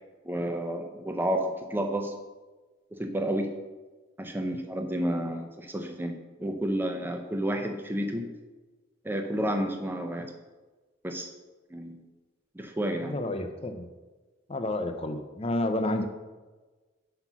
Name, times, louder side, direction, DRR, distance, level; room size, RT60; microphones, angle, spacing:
voice 1, 0.3-2.1 2.9-3.5 4.2-6.1 6.4-8.3 9.0-10.3 11.0-11.3 11.7-12.0 12.6-13.1, right 1 dB, 10° right, 4 dB, 0.6 m, -30 dB
voice 2, 13.0-13.9 14.5-16.0, left 1 dB, 30° left, 6 dB, 0.6 m, -30 dB
5.8 x 5.6 x 6.0 m, 1.3 s
head